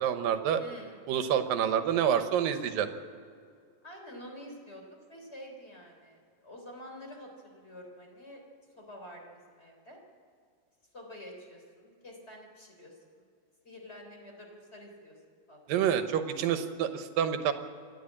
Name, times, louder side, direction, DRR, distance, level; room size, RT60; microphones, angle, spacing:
voice 1, 0.0-0.6 1.1-2.9 15.7-17.5, right 9 dB, 90° right, 9 dB, 2.8 m, -28 dB
voice 2, 0.6-1.0 3.8-4.8 5.1-8.4 8.8-10.0 10.9-13.2 13.6-15.2 15.5-15.6, equal, 20° left, 1 dB, 3.5 m, -48 dB
27.5 x 11.0 x 8.8 m, 2.3 s
omnidirectional pair, 3.9 m